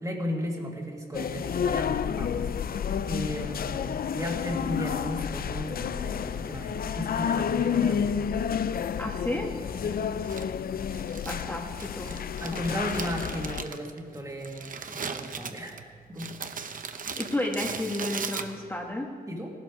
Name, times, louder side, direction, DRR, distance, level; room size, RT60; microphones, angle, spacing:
voice 1, 0.0-8.2 9.8-9.9 12.4-15.8 16.1-16.3 19.3-19.5, equal, 20° right, 0 dB, 2.1 m, -35 dB
sound 1, 1.1-13.6, left 7 dB, 70° left, 0.5 m, -30 dB
voice 2, 9.0-9.6 11.2-12.2 12.5-12.9 17.0-19.1, left 1 dB, 15° left, -1 dB, 1.4 m, -32 dB
Crumpling crinkling, 10.3-18.9, right 5 dB, 60° right, 0.8 m, -39 dB
18.0 x 12.5 x 4.8 m, 2.3 s
wide cardioid pair, 145°, 16 cm